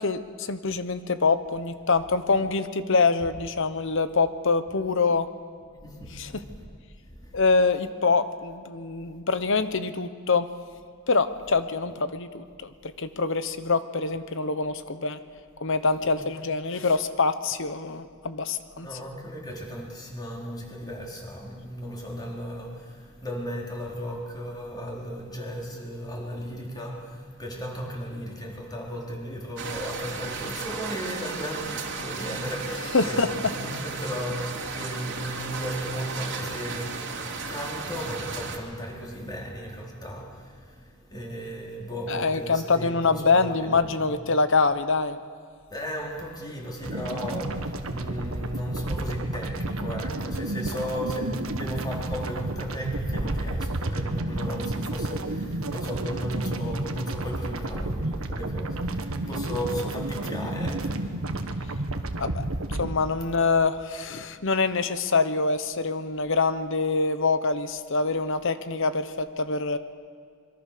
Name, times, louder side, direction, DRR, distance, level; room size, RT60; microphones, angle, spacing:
voice 1, 0.0-5.3 6.2-6.3 7.3-10.5 11.1-15.2 15.6-18.9 32.9-33.3 42.1-45.2 62.2-62.4 62.8-69.8, left 4 dB, 60° left, 11 dB, 1.2 m, -25 dB
voice 2, 5.6-7.4 16.0-16.1 18.7-44.1 45.7-62.7, equal, 20° left, -2 dB, 4.3 m, -35 dB
sound 1, 29.6-38.6, right 4 dB, 55° right, 2.8 m, -35 dB
sound 2, 46.8-62.9, right 2 dB, 70° right, 1.6 m, -31 dB
25.0 x 23.0 x 6.8 m, 2.2 s
head